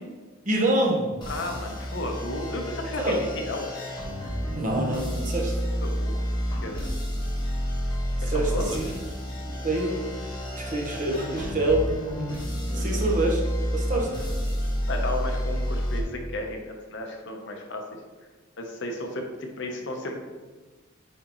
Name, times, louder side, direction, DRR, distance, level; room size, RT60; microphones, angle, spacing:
voice 1, 0.4-1.2 3.0-3.2 4.5-5.5 8.2-8.7 9.4-10.0 10.6-11.8 12.7-13.4 13.7-14.1, right 1 dB, 40° right, 0 dB, 1.0 m, -26 dB
sound 1, 1.2-16.0, equal, 20° left, 1.3 m, -30 dB
voice 2, 1.3-3.8 5.8-6.9 8.2-9.0 12.7-13.0 14.9-18.0 18.6-20.3, left 1 dB, 60° left, 3 dB, 0.8 m, -34 dB
8.7 x 3.8 x 3.0 m, 1.3 s
head